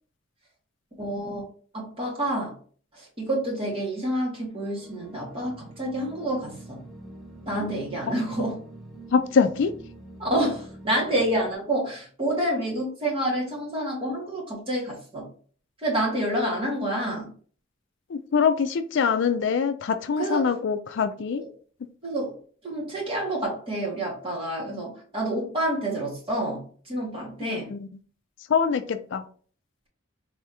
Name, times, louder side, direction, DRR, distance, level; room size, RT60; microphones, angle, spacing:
voice 1, 1.0-1.5 1.7-2.5 2.9-6.8 7.4-8.6 10.2-15.3 15.8-17.3 20.2-20.4 21.4-21.5 22.0-22.3 22.6-27.7, right 1 dB, 25° right, -4 dB, 2.0 m, -28 dB
sound 1, 4.6-11.6, right 2 dB, ahead, 1.0 m, -46 dB
voice 2, 9.1-9.7 18.1-21.4 27.4-27.8 28.5-29.2, left 6 dB, 60° left, 9 dB, 0.4 m, -24 dB
4.1 x 3.5 x 2.8 m, 0.43 s
head